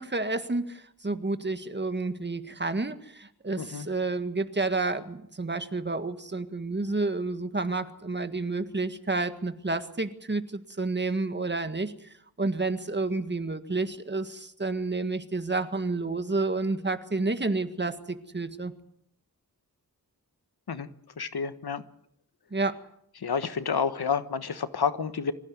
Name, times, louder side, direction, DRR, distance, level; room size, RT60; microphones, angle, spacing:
voice 1, 0.0-18.7 22.5-22.8, right 3 dB, 30° right, 10 dB, 1.7 m, -30 dB
voice 2, 21.2-21.8 23.2-25.3, left 6 dB, 90° left, 11 dB, 1.5 m, -29 dB
25.0 x 15.5 x 9.5 m, 0.71 s
wide cardioid pair, 100°, 37 cm